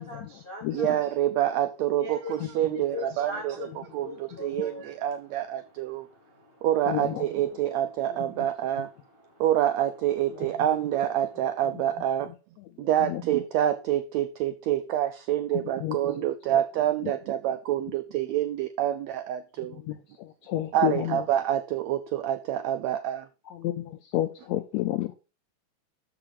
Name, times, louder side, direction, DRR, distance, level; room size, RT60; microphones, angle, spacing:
voice 1, 0.0-1.0 1.9-5.1 5.6-6.7 9.0-9.4, left 2 dB, 55° left, -2 dB, 0.5 m, -41 dB
voice 2, 0.7-3.7 3.9-6.1 6.6-8.9 9.4-12.3 12.8-19.8 20.7-23.3, right 11 dB, 85° right, 8 dB, 1.5 m, -27 dB
voice 3, 6.9-7.3 13.1-13.2 15.8-16.0 19.9-20.0 20.5-21.2 23.6-25.1, left 13 dB, 85° left, 10 dB, 1.5 m, -29 dB
6.9 x 5.9 x 4.9 m, 0.32 s
omnidirectional pair, 3.7 m